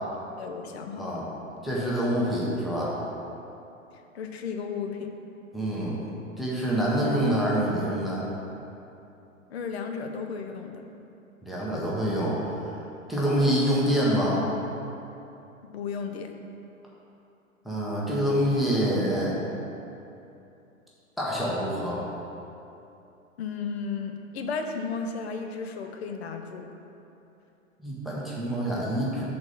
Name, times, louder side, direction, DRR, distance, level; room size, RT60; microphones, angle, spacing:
voice 1, 0.4-1.2 4.1-5.1 9.5-10.8 15.7-16.3 23.4-26.7, left 5 dB, 50° left, 5 dB, 0.7 m, -34 dB
voice 2, 1.6-2.9 5.5-6.0 6.4-8.2 11.4-12.4 13.1-14.4 17.6-19.4 21.2-22.0 27.8-29.2, equal, ahead, -7 dB, 0.7 m, -26 dB
6.0 x 4.2 x 6.2 m, 2.8 s
figure-of-eight pair, 110°, 42 cm